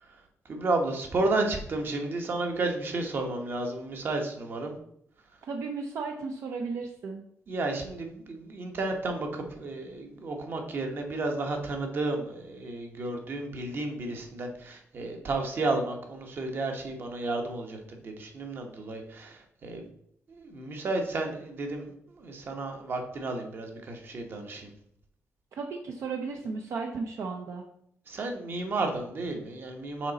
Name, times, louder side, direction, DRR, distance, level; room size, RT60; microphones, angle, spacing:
voice 1, 0.4-4.8 7.5-19.8 20.3-24.7 28.1-30.1, right 2 dB, 45° right, 4 dB, 1.1 m, -32 dB
voice 2, 5.5-7.2 25.6-27.6, right 4 dB, 65° right, 2 dB, 0.6 m, -34 dB
6.2 x 4.1 x 4.0 m, 0.69 s
wide cardioid pair, 150°, 5 cm